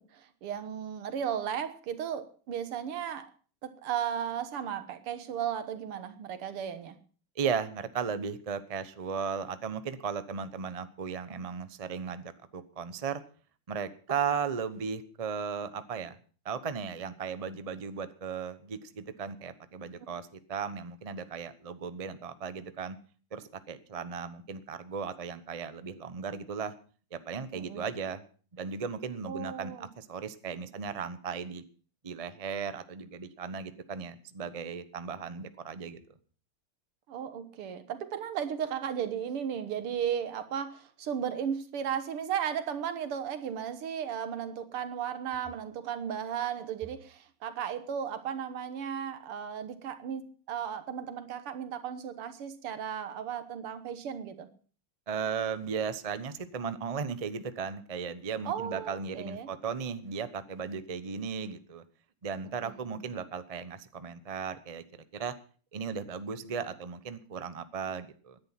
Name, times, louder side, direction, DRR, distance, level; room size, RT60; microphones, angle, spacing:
voice 1, 0.0-3.3 3.6-6.9 27.5-27.9 29.3-29.9 37.1-54.5 58.5-59.5 62.6-62.7, right 8 dB, 85° right, 11 dB, 2.2 m, -35 dB
voice 2, 7.4-13.2 13.7-16.2 16.4-23.0 23.3-26.7 27.1-28.2 28.5-31.6 32.0-36.0 55.1-61.8 62.2-64.8 65.1-65.3 65.7-68.4, right 6 dB, 65° right, 12 dB, 0.3 m, -36 dB
17.0 x 10.5 x 5.8 m, 0.41 s
omnidirectional pair, 2.4 m